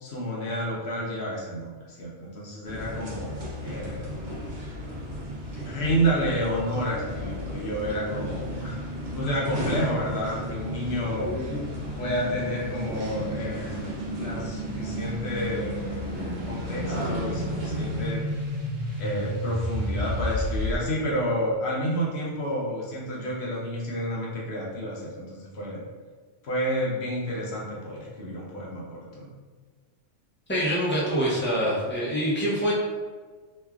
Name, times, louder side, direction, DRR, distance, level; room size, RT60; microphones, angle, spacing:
voice 1, 0.0-3.4 3.6-4.2 5.5-8.8 9.1-11.3 12.0-13.9 14.2-16.0 16.4-18.2 19.0-25.8 26.4-29.3, equal, 65° left, -4 dB, 0.9 m, -30 dB
sound 1, 2.6-18.1, left 1 dB, 50° right, 0.7 m, -35 dB
sound 2, 3.1-20.8, equal, 65° right, 1.1 m, -35 dB
voice 2, 30.5-32.7, equal, 15° left, -6 dB, 0.4 m, -25 dB
3.1 x 2.3 x 2.3 m, 1.4 s
omnidirectional pair, 1.3 m